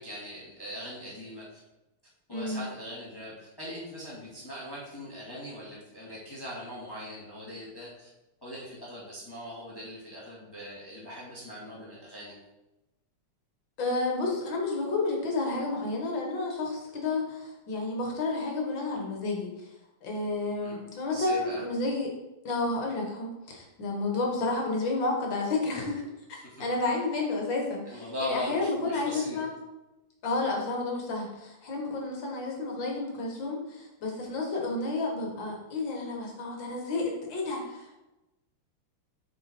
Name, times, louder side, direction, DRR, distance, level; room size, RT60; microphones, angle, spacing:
voice 1, 0.0-1.6 2.3-8.1 8.4-12.3 20.6-20.8 21.1-21.6 26.4-26.6 27.9-29.4, equal, 10° left, -7 dB, 1.9 m, -40 dB
voice 2, 2.3-2.6 13.8-19.5 20.0-22.1 22.5-26.1 26.6-29.5 30.2-38.0, left 3 dB, 60° left, 0 dB, 2.1 m, -31 dB
7.5 x 4.9 x 4.3 m, 0.98 s
omnidirectional pair, 2.4 m